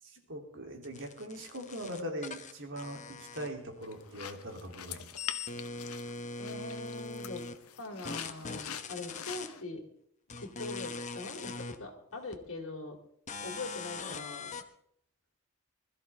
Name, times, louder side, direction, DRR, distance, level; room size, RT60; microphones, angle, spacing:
voice 1, 0.0-5.1, equal, 60° right, 2 dB, 3.0 m, -41 dB
sound 1, 0.8-3.9 4.2-7.6 8.0-9.5 10.3-11.8 12.3-12.4 13.3-14.6, left 4 dB, 35° left, 1.0 m, -41 dB
sound 2, 3.8-9.6, left 9 dB, 90° left, 1.0 m, -45 dB
voice 2, 6.4-7.4 7.8-9.8 10.4-13.0 13.4-14.5, left 2 dB, 65° left, 1 dB, 2.9 m, -42 dB
21.0 x 13.5 x 3.5 m, 0.69 s
head